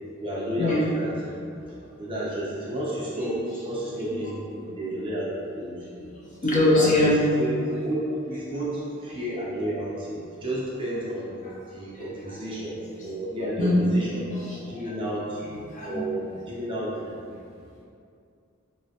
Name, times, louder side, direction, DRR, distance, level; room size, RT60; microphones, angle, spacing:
voice 1, 0.2-5.9 6.5-11.3 11.7-14.2 14.6-15.4 15.8-17.1, right 1 dB, 25° right, -7 dB, 0.5 m, -31 dB
voice 2, 6.0-7.2 9.1-9.2 11.4-12.1 13.0-13.1 13.4-13.9 14.3-14.9 15.5-16.0, left 2 dB, 35° left, -5 dB, 0.4 m, -25 dB
3.1 x 2.1 x 2.7 m, 2.4 s
head